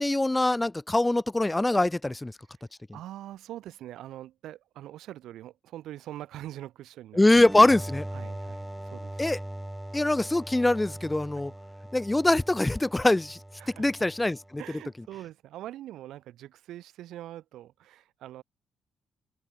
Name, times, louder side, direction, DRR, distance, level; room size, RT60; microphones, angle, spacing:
voice 1, 0.0-2.3 7.2-8.1 9.2-9.4 9.9-11.5 11.9-13.4 13.8-14.6, left 2 dB, 15° left, 1.8 m, -23 dB
voice 2, 2.9-7.3 8.1-9.2 11.4-11.5 13.6-13.9 14.6-18.4, right 13 dB, 70° right, 7.1 m, -43 dB
sound 1, 7.4-14.8, right 1 dB, 10° right, 5.4 m, -40 dB
hypercardioid pair, 45°, 0 cm